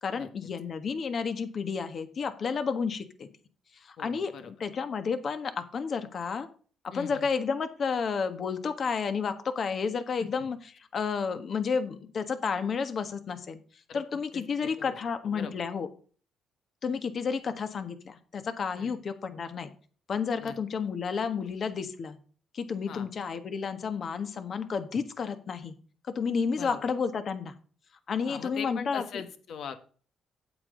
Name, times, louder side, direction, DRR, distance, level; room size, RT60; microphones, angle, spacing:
voice 1, 0.0-3.3 3.8-6.5 6.8-13.6 13.9-15.9 16.8-19.7 20.1-22.2 22.5-25.7 26.1-27.5 28.1-29.0, left 5 dB, 50° left, 9 dB, 1.5 m, -31 dB
voice 2, 4.0-4.5 6.9-7.3 10.2-10.3 13.9-14.0 14.3-15.5 18.8-19.0 20.4-20.6 22.9-23.1 26.5-26.8 28.2-29.8, left 7 dB, 70° left, 8 dB, 1.5 m, -41 dB
8.7 x 8.5 x 3.9 m, 0.41 s
cardioid pair, 90°, 0 cm